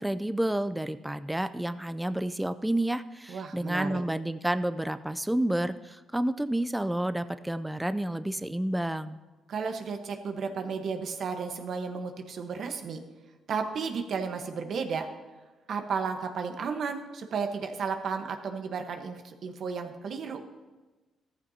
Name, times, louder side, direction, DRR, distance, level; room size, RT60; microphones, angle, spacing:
voice 1, 0.0-9.2, right 1 dB, 5° right, 12 dB, 0.5 m, -30 dB
voice 2, 3.3-4.0 9.5-13.0 13.5-15.1 15.7-20.4, right 5 dB, 60° right, 5 dB, 1.2 m, -33 dB
14.5 x 14.0 x 2.8 m, 1.2 s
cardioid pair, 90°, 0 cm